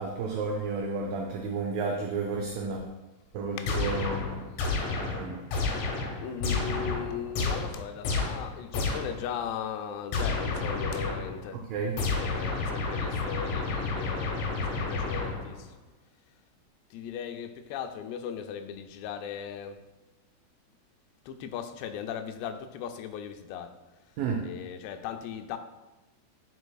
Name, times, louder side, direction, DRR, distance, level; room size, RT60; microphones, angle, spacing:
voice 1, 0.0-2.9 3.3-4.4 5.0-5.4 11.7-12.0 24.2-24.4, right 4 dB, 90° right, 2 dB, 2.0 m, -31 dB
sound 1, 3.7-9.3 10.1-11.4 12.0-15.7, left 3 dB, 70° left, 2.4 m, -31 dB
voice 2, 6.2-11.6 12.1-15.7 16.9-19.8 21.3-23.8 24.4-25.6, left 8 dB, 90° left, 8 dB, 2.7 m, -38 dB
7.9 x 7.0 x 2.3 m, 1.1 s
omnidirectional pair, 4.8 m